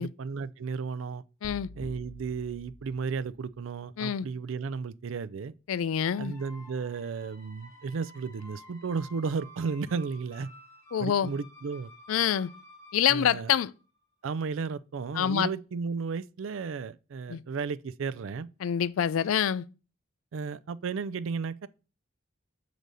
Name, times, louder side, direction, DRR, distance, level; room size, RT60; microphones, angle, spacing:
voice 1, 0.0-1.2 1.8-5.5 6.2-10.5 11.0-11.9 13.1-13.5 14.2-18.5 20.3-21.7, right 5 dB, 75° right, 0.4 m, -34 dB
voice 2, 1.4-1.7 4.0-4.3 5.7-6.3 10.9-11.3 12.1-12.5 12.9-13.7 15.1-15.5 17.3-17.4 18.6-19.6, left 9 dB, 90° left, 0.4 m, -26 dB
sound 1, 1.4-3.6, left 2 dB, 40° left, 0.7 m, -47 dB
sound 2, 6.0-14.0, left 1 dB, 15° left, 0.9 m, -53 dB
6.7 x 4.0 x 6.2 m
head